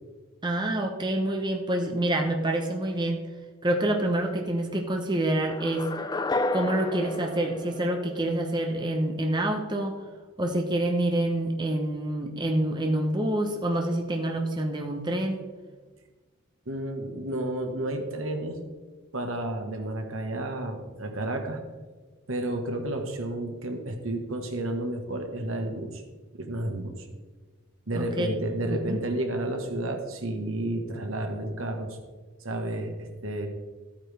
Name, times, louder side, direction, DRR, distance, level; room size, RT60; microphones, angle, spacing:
voice 1, 0.4-3.2 3.6-5.9 6.5-10.0 10.4-15.4 27.9-28.4 28.7-29.1, right 1 dB, 20° right, 2 dB, 1.0 m, -27 dB
sound 1, 5.4-8.5, left 2 dB, 20° left, 0.3 m, -31 dB
voice 2, 16.7-18.6 19.1-21.6 22.3-26.0 26.3-27.1 27.9-32.0 32.4-33.5, right 1 dB, 75° right, 4 dB, 1.4 m, -31 dB
13.5 x 8.8 x 3.5 m, 1.3 s
head